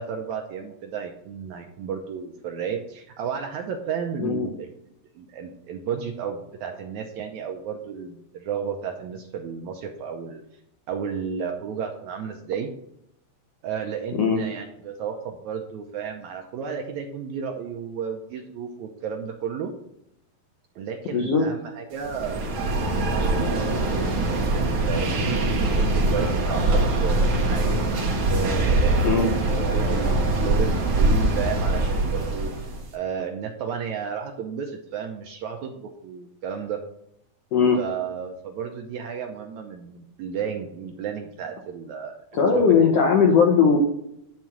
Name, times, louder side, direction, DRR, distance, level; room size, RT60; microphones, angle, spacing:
voice 1, 0.0-4.7 5.1-10.4 10.9-12.7 13.6-19.7 20.8-22.4 23.0-27.7 28.1-29.1 29.4-32.5 32.9-36.8 37.8-42.2 42.5-42.9, right 7 dB, 75° right, 3 dB, 1.7 m, -33 dB
voice 2, 21.1-21.5 29.0-29.3 37.5-37.8 42.3-43.8, left 6 dB, 75° left, 1 dB, 1.5 m, -19 dB
sound 1, 22.0-32.8, right 2 dB, 50° right, 1.6 m, -23 dB
10.5 x 3.6 x 7.2 m, 0.78 s
omnidirectional pair, 4.0 m